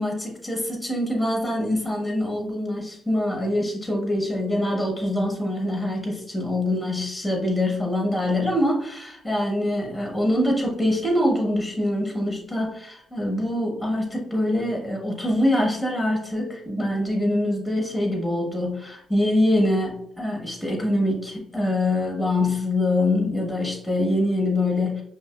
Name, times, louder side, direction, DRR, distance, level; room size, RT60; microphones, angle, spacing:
voice 1, 0.0-25.0, left 1 dB, 5° left, 0 dB, 1.0 m, -24 dB
5.3 x 2.6 x 2.3 m, 0.77 s
cardioid pair, 90°, 0 cm